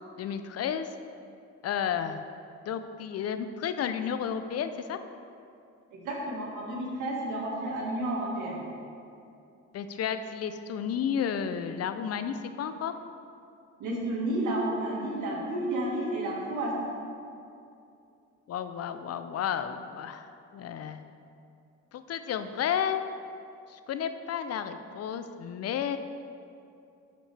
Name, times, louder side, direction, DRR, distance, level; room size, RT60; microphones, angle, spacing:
voice 1, 0.2-0.9 1.6-2.2 2.7-5.0 9.7-12.9 18.5-21.0 21.9-23.0 23.7-26.0, left 8 dB, 55° left, 10 dB, 0.5 m, -32 dB
voice 2, 5.9-8.6 13.8-16.7, right 1 dB, 80° right, -3 dB, 1.8 m, -31 dB
11.0 x 5.2 x 3.3 m, 2.5 s
cardioid pair, 90°, 30 cm